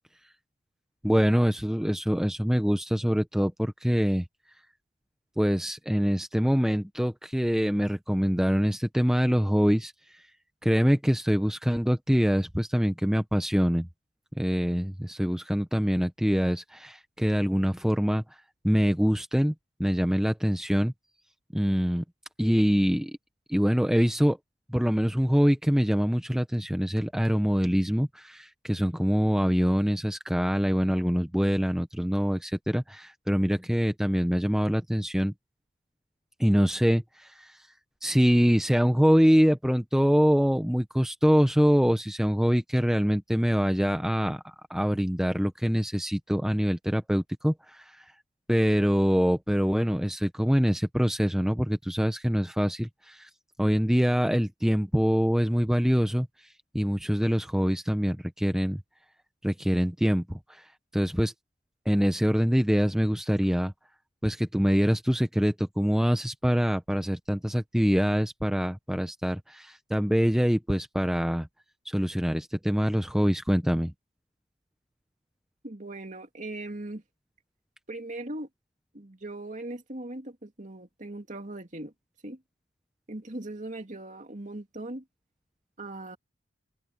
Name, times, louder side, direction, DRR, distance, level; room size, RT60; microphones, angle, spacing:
voice 1, 1.0-4.2 5.4-9.9 10.6-13.9 14.4-18.2 18.6-19.5 19.8-20.9 21.5-22.0 22.4-23.2 23.5-24.4 24.7-35.3 36.4-37.6 38.0-44.4 44.7-48.1 48.5-53.3 53.6-56.3 56.7-58.8 59.4-60.7 60.9-61.3 61.9-63.7 64.2-71.5 71.9-73.9, equal, 5° right, 0.7 m, -24 dB
voice 2, 75.6-77.0 77.9-78.5 78.9-81.9 82.2-82.4 83.1-85.0 85.8-86.2, right 2 dB, 40° right, 2.5 m, -39 dB
head